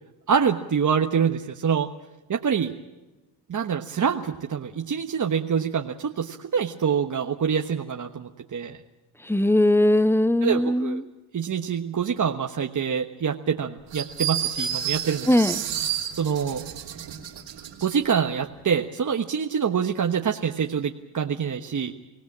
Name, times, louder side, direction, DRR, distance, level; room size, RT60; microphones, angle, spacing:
voice 1, 0.3-1.9 2.3-2.7 3.5-8.8 10.4-11.0 11.3-15.3 15.9-16.6 17.8-21.9, right 7 dB, 45° right, 1.3 m, -26 dB
voice 2, 9.3-11.0 15.3-15.5, left 1 dB, 5° left, 0.7 m, -20 dB
sound 1, 13.9-17.9, right 10 dB, 80° right, 3.3 m, -30 dB
24.5 x 17.0 x 8.6 m
cardioid pair, 75°, 44 cm